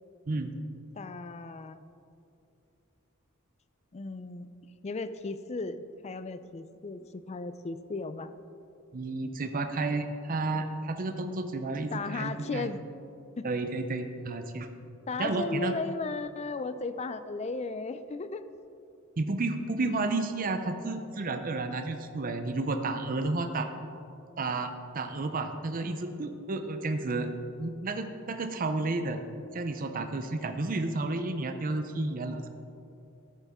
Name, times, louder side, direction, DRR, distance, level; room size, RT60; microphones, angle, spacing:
voice 1, 0.3-0.6 8.9-12.7 13.4-14.7 15.2-15.7 19.2-23.7 24.4-27.3 27.6-29.2 29.5-32.5, right 2 dB, 45° right, 7 dB, 0.6 m, -31 dB
voice 2, 1.0-1.8 3.9-4.5 4.8-8.3 11.9-12.8 13.4-13.5 15.1-18.4, left 3 dB, 30° left, 11 dB, 0.4 m, -36 dB
13.5 x 9.0 x 3.6 m, 2.7 s
head